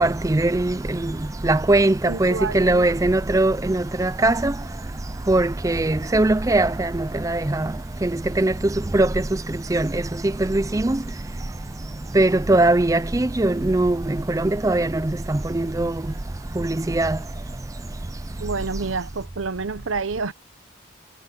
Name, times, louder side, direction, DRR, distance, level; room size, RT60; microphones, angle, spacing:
voice 1, 0.0-0.7 1.5-1.9 2.2-3.5 4.0-4.5 5.3-6.7 8.4-8.5 8.9-9.1 9.7-9.8 10.5-10.8 12.2-13.0 13.4-13.9 14.6-14.9 15.8-15.9 17.0-17.1, right 2 dB, 15° right, 0.4 m, -19 dB
voice 2, 2.0-2.9 18.4-20.3, right 4 dB, 90° right, 0.8 m, -28 dB
head